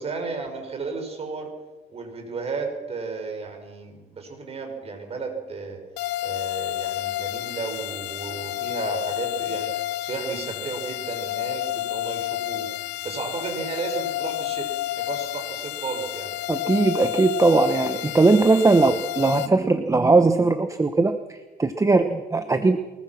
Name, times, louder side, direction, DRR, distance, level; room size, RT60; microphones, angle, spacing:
voice 1, 0.0-1.5 1.9-5.8 6.2-9.7 10.0-12.7 13.0-14.7 15.0-16.3, right 4 dB, 35° right, 3 dB, 6.0 m, -33 dB
sound 1, 6.0-19.5, left 15 dB, 85° left, 0.7 m, -30 dB
voice 2, 16.5-22.8, right 3 dB, 20° right, 9 dB, 1.2 m, -19 dB
24.0 x 21.5 x 6.0 m, 1.1 s
cardioid pair, 110°, 17 cm